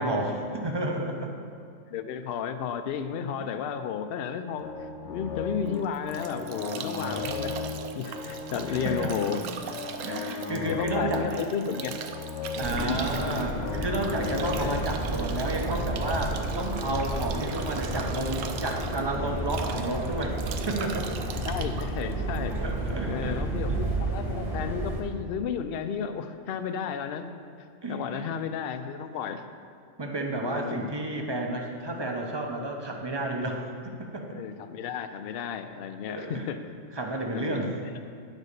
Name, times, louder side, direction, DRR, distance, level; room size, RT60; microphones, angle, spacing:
voice 1, 0.0-1.3 8.5-9.1 10.0-11.4 12.6-21.2 22.6-23.4 23.7-23.8 27.8-28.2 30.0-33.7 34.0-34.3 36.1-36.5 37.0-37.8, right 2 dB, 30° right, 1 dB, 0.6 m, -31 dB
voice 2, 1.9-7.6 7.9-9.4 10.7-11.9 12.6-13.0 14.6-14.8 21.4-22.6 23.1-27.3 27.9-29.4 30.4-30.8 34.3-36.6 37.3-38.0, left 7 dB, 60° left, 9 dB, 0.6 m, -33 dB
sound 1, 4.6-18.6, left 4 dB, 85° left, 1.1 m, -37 dB
Bathtub (filling or washing) / Drip / Trickle dribble, 5.7-22.9, right 7 dB, 90° right, 1.0 m, -40 dB
sound 2, 12.6-25.0, right 1 dB, ahead, 1.1 m, -32 dB
9.6 x 4.2 x 6.6 m, 2.3 s
omnidirectional pair, 1.3 m